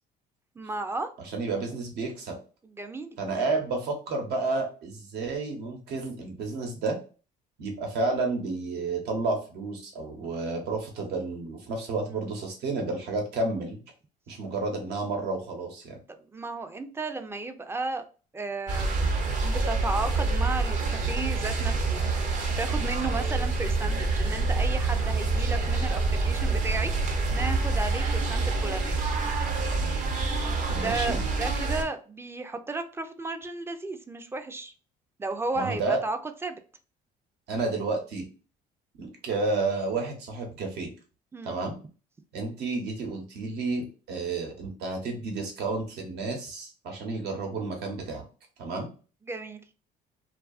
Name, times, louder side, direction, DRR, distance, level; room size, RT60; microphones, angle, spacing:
voice 1, 0.6-1.1 2.6-3.4 12.1-12.2 16.3-18.1 18.3-19.1 19.4-22.0 22.6-26.9 27.3-29.0 30.7-34.7 35.2-36.6 41.3-41.6 49.3-49.6, right 3 dB, 15° right, 8 dB, 0.3 m, -34 dB
voice 2, 1.3-2.3 3.2-7.0 7.6-13.8 14.3-16.0 30.7-31.2 35.5-36.0 37.5-38.3 39.0-40.9 41.4-41.8 42.3-48.3 48.6-48.9, right 3 dB, 80° right, 3 dB, 1.0 m, -31 dB
sound 1, 18.7-31.8, right 3 dB, 50° right, 0.7 m, -27 dB
2.7 x 2.3 x 2.3 m, 0.36 s
cardioid pair, 110°, 17 cm